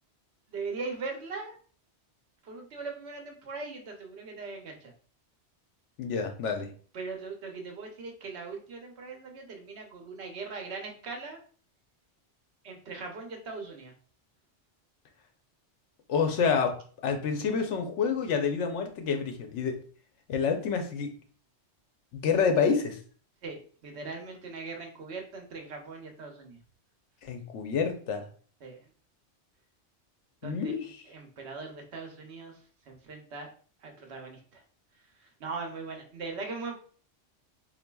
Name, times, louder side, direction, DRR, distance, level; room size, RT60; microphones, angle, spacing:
voice 1, 0.5-1.6 2.4-4.9 6.9-11.4 12.6-13.9 23.4-26.6 28.6-28.8 30.4-32.6 32.9-33.5 33.8-34.6 35.2-36.7, right 4 dB, 70° right, 2 dB, 1.0 m, -40 dB
voice 2, 6.0-6.7 16.1-16.7 17.0-19.8 20.3-21.1 22.1-23.0 27.2-28.2 30.4-30.8, left 6 dB, 90° left, 5 dB, 1.0 m, -28 dB
3.9 x 2.5 x 2.2 m, 0.43 s
omnidirectional pair, 1.2 m